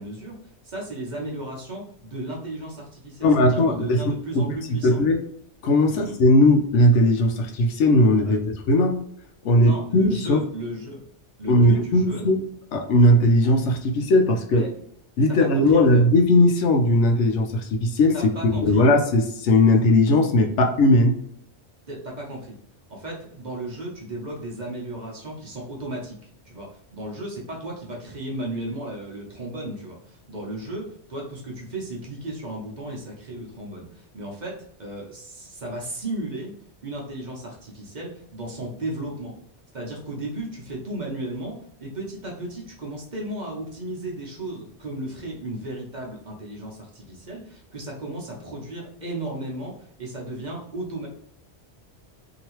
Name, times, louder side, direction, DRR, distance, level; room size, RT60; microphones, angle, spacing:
voice 1, 0.0-5.0 5.9-6.2 8.2-8.3 9.6-11.0 11.4-12.3 14.5-14.7 15.5-16.0 18.1-18.9 21.9-22.6 22.9-26.2 26.4-36.5 36.8-39.3 39.7-51.1, right 1 dB, 45° right, -2 dB, 0.9 m, -35 dB
voice 2, 3.2-4.5 4.8-5.2 5.6-9.0 9.4-10.4 11.5-12.5 12.7-14.7 15.2-18.2 18.6-21.2, left 1 dB, 80° left, 3 dB, 0.9 m, -18 dB
2.9 x 2.7 x 2.9 m, 0.68 s
omnidirectional pair, 1.2 m